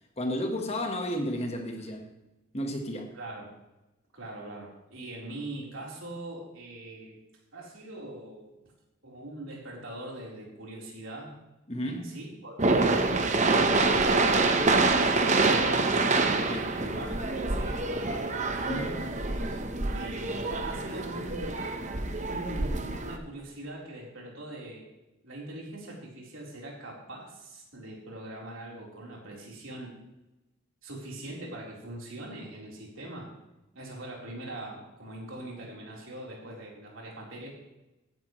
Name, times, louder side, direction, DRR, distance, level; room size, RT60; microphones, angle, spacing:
voice 1, 0.2-2.1 2.5-3.1 11.7-12.2 16.5-16.7 18.7-19.1, equal, 30° left, 1.4 m, -32 dB
voice 2, 3.1-3.5 4.1-7.2 7.5-8.5 9.0-11.3 11.8-14.4 14.9-15.9 16.2-18.9 19.9-21.6 22.2-24.8 25.2-29.9 30.8-33.3 33.7-37.5, right 1 dB, 60° right, 4.1 m, -42 dB
sound 1, 12.6-23.2, right 3 dB, 35° right, 1.0 m, -26 dB
15.5 x 10.5 x 3.2 m
head